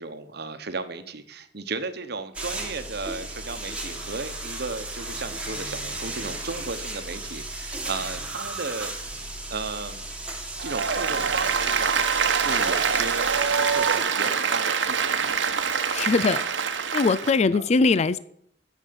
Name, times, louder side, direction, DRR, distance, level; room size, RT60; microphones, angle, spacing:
voice 1, 0.0-8.9 9.5-10.0 10.6-15.3 17.5-17.7, right 3 dB, 60° right, 10 dB, 1.1 m, -35 dB
sound 1, 2.3-14.0, right 2 dB, 5° right, 1.8 m, -35 dB
Applause, 10.6-17.4, right 6 dB, 85° right, 1.1 m, -25 dB
voice 2, 15.9-16.4 16.9-18.2, left 4 dB, 35° left, 17 dB, 0.4 m, -21 dB
10.0 x 7.1 x 8.7 m, 0.71 s
head